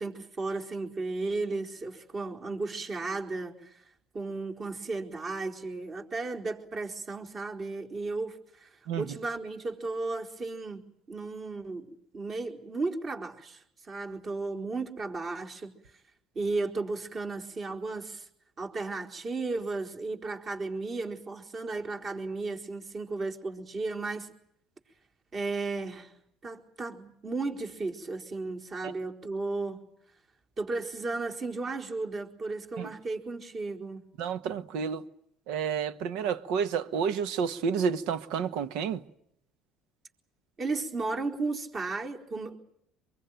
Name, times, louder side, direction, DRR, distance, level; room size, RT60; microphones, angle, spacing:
voice 1, 0.0-3.8 4.1-15.8 16.3-18.3 18.6-24.3 25.3-26.1 26.4-29.9 30.6-34.1 40.6-42.6, right 3 dB, 40° right, 4.5 m, -34 dB
voice 2, 34.2-35.0 35.5-39.0, right 6 dB, 75° right, 1.4 m, -30 dB
24.0 x 23.0 x 9.2 m
supercardioid pair, 80°, 0 cm